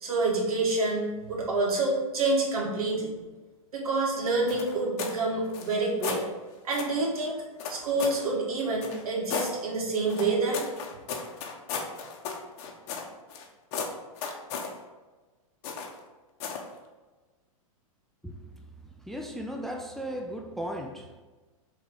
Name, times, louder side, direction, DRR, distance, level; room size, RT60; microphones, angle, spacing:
voice 1, 0.0-3.1 3.7-6.2 6.6-7.3 7.7-10.6, right 3 dB, 80° right, 1.9 m, -27 dB
sound 1, 4.5-5.2 5.5-6.2 6.7-7.0 7.6-8.2 8.8-9.5 10.1-13.5 13.7-14.7 15.6-16.0 16.4-16.7, left 5 dB, 50° left, 1.1 m, -35 dB
voice 2, 18.2-21.2, equal, ahead, 0.4 m, -37 dB
5.4 x 3.8 x 4.9 m
hypercardioid pair, 120°, 18 cm